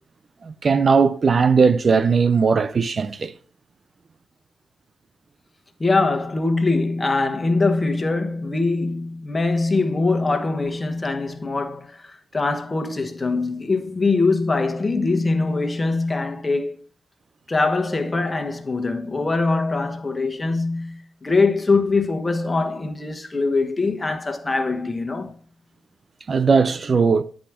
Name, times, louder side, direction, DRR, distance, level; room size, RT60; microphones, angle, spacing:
voice 1, 0.4-3.3 26.3-27.2, right 5 dB, 50° right, 0.5 m, -18 dB
voice 2, 5.8-16.8 17.5-25.3, left 3 dB, 30° left, 1.2 m, -22 dB
10.0 x 5.0 x 3.6 m
cardioid pair, 60°, 0 cm